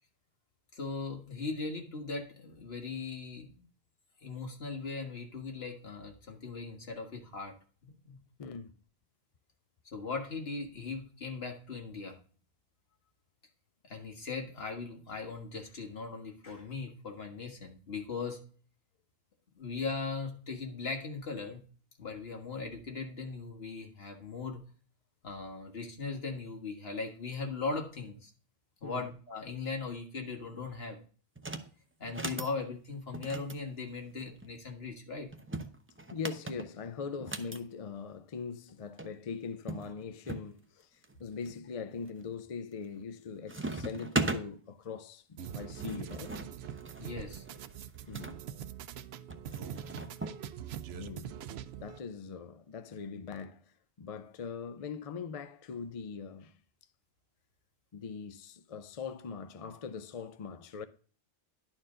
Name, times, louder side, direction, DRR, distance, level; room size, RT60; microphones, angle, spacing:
voice 1, 0.7-3.7 4.2-7.5 7.8-8.2 9.9-12.2 13.8-18.4 19.6-21.6 22.0-24.6 25.2-28.3 28.8-31.0 32.0-35.3 47.0-47.4, left 4 dB, 70° left, 1.8 m, -39 dB
voice 2, 8.4-8.7 28.8-29.1 36.1-46.4 48.1-48.4 50.9-51.4 51.8-56.6 57.9-60.9, left 5 dB, 45° left, 0.5 m, -41 dB
sound 1, 31.4-31.7 32.1-32.5 33.1-34.5 35.3-37.6 38.7-38.8 39.0-39.1 39.7-40.5 41.0-41.5 42.1-42.5 42.8-43.2 43.5-44.4 45.4-48.4 49.3-50.4, right 2 dB, 15° right, 0.5 m, -38 dB
sound 2, 45.4-52.0, right 9 dB, 75° right, 0.8 m, -43 dB
11.0 x 4.5 x 3.7 m
omnidirectional pair, 1.1 m